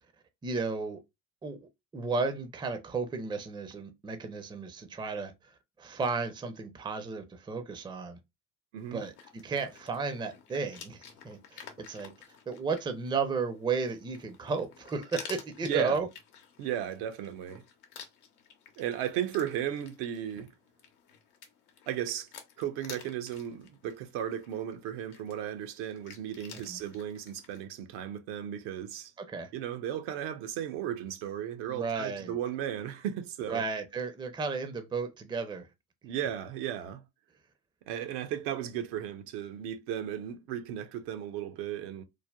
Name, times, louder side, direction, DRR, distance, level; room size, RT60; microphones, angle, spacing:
voice 1, 0.4-1.0 1.4-1.6 1.9-5.5 5.8-8.2 8.9-16.1 26.5-26.8 29.2-29.5 31.7-32.4 33.5-35.7, right 4 dB, 10° right, 0.5 m, -34 dB
voice 2, 8.7-9.1 15.6-16.1 16.6-17.6 18.8-20.5 21.9-22.3 22.6-29.1 29.5-33.6 36.0-37.0 37.9-42.0, right 10 dB, 70° right, 0.7 m, -35 dB
sound 1, 8.8-27.6, left 7 dB, 85° left, 0.8 m, -52 dB
3.3 x 2.1 x 2.2 m
hypercardioid pair, 80°, 44 cm